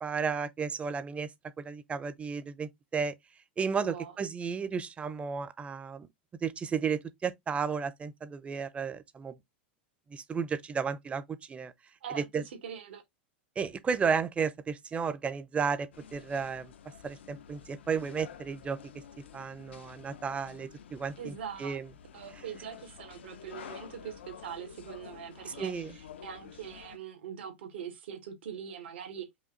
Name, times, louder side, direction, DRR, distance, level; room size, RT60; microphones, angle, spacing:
voice 1, 0.0-1.3 1.6-3.1 3.6-6.1 6.4-9.4 10.1-11.7 12.2-12.4 13.6-16.7 17.0-18.8 19.3-21.3 21.6-21.9 25.6-25.9, right 6 dB, 20° right, 0.7 m, -33 dB
voice 2, 3.8-4.2 12.0-13.0 21.2-21.8 22.1-29.3, right 8 dB, 80° right, 1.6 m, -42 dB
sound 1, 15.9-27.0, left 8 dB, 85° left, 0.8 m, -50 dB
5.2 x 2.6 x 3.9 m
hypercardioid pair, 110°, 6 cm